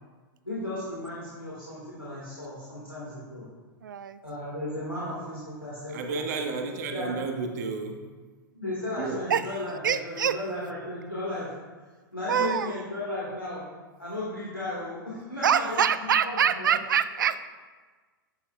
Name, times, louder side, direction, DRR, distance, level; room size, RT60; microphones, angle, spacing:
voice 1, 0.4-3.5 4.2-6.2 6.9-7.1 8.5-11.5 12.1-13.6 14.0-16.7, left 1 dB, 90° left, -8 dB, 1.8 m, -35 dB
voice 2, 3.8-4.2 9.3-9.5 9.8-10.4 12.3-12.7 15.4-17.5, right 8 dB, 65° right, 14 dB, 0.4 m, -25 dB
voice 3, 5.9-8.0 9.0-9.2, right 4 dB, 50° right, 4 dB, 1.1 m, -32 dB
10.5 x 7.6 x 2.4 m, 1.4 s
figure-of-eight pair, 95°, 11 cm